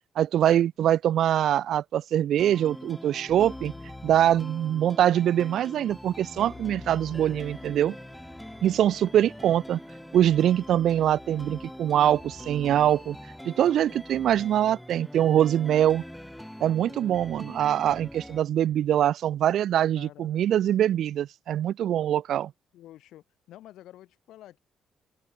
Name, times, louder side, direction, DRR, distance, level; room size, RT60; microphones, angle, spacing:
voice 1, 0.2-3.7 4.0-8.0 8.6-9.8 10.1-13.2 13.4-16.0 16.6-22.5, right 11 dB, 70° right, 0.3 m, -23 dB
sound 1, 2.4-18.4, equal, 5° left, 2.3 m, -43 dB
Keyboard (musical), 3.3-5.0 6.4-14.7, left 4 dB, 30° left, 5.5 m, -50 dB
voice 2, 4.2-4.6 19.9-20.4 22.7-24.6, left 13 dB, 85° left, 4.4 m, -49 dB
open air
cardioid pair, 90°, 0 cm